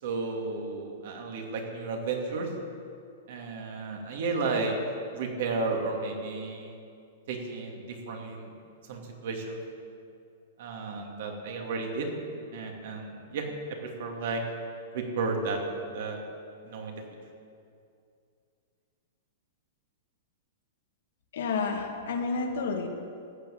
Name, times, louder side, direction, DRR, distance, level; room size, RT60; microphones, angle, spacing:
voice 1, 0.0-2.5 3.3-4.8 5.1-6.8 7.3-8.5 8.9-9.6 10.6-12.1 12.5-14.4 14.9-15.6 15.9-16.2 16.6-17.0, right 4 dB, 55° right, 1 dB, 2.6 m, -33 dB
voice 2, 21.3-22.9, left 4 dB, 75° left, 3 dB, 2.0 m, -30 dB
14.0 x 7.8 x 8.6 m, 2.4 s
supercardioid pair, 165°, 0 cm